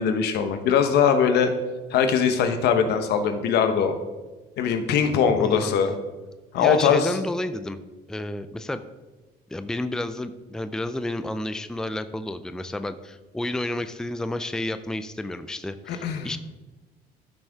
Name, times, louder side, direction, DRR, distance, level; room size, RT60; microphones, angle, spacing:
voice 1, 0.0-1.5 1.9-4.0 4.6-5.9 6.5-7.2 15.9-16.3, left 7 dB, 75° left, 7 dB, 1.1 m, -21 dB
voice 2, 5.4-5.8 6.6-7.8 8.1-8.8 9.5-16.4, left 1 dB, 5° left, 11 dB, 0.5 m, -31 dB
13.0 x 6.4 x 3.6 m, 1.2 s
cardioid pair, 110°, 17 cm